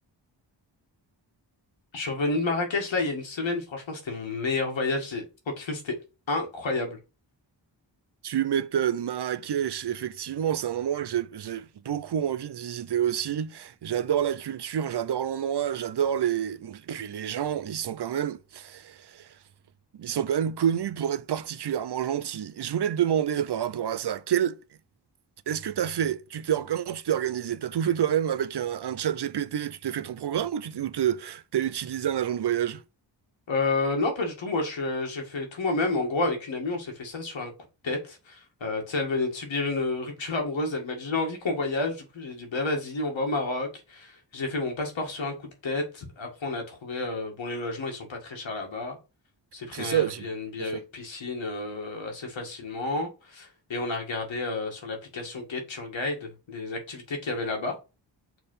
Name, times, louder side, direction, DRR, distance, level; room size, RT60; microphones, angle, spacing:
voice 1, 1.9-6.0 6.3-7.0 33.5-37.5 37.8-49.0 49.5-57.7, left 3 dB, 90° left, 2.0 m, -30 dB
voice 2, 8.2-19.3 19.9-24.6 25.5-32.8 49.7-50.3 50.6-50.8, right 9 dB, 65° right, 0.6 m, -28 dB
6.2 x 3.4 x 5.5 m
wide cardioid pair, 95°, 44 cm